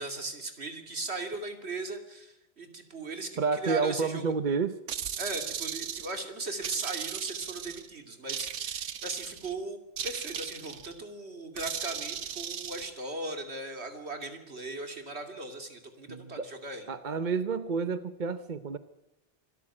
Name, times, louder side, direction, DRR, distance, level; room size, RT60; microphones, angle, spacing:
voice 1, 0.0-3.3 3.6-4.2 5.2-16.8, right 2 dB, 60° right, 6 dB, 2.9 m, -38 dB
voice 2, 3.4-4.8 16.1-16.5 16.9-18.8, right 5 dB, 45° right, 12 dB, 0.9 m, -30 dB
sound 1, 4.9-6.2 6.6-7.9 8.3-9.5 10.0-10.9 11.6-12.9, right 8 dB, 85° right, 1.3 m, -36 dB
25.0 x 13.5 x 8.7 m, 0.90 s
omnidirectional pair, 1.2 m